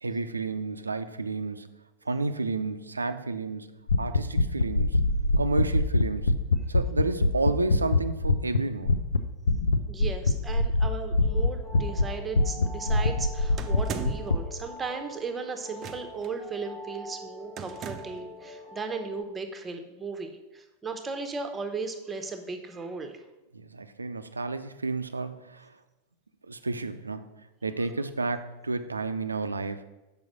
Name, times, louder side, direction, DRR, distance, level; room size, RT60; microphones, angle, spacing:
voice 1, 0.0-1.8 2.1-5.1 5.4-8.9 23.5-25.7 26.4-27.3 27.6-29.9, right 3 dB, 80° right, 10 dB, 0.5 m, -31 dB
sound 1, 3.9-8.6 8.8-9.2 9.5-12.0 12.3-14.4, left 2 dB, 70° left, 0.5 m, -23 dB
voice 2, 9.9-23.2, right 4 dB, 15° right, 6 dB, 0.9 m, -36 dB
sound 2, 11.2-19.2, left 1 dB, 25° left, 1.3 m, -44 dB
sound 3, 13.6-14.4 15.8-16.3 17.6-18.3, right 7 dB, 30° right, 0.6 m, -37 dB
6.2 x 5.2 x 6.2 m, 1.0 s
figure-of-eight pair, 90°, 0 cm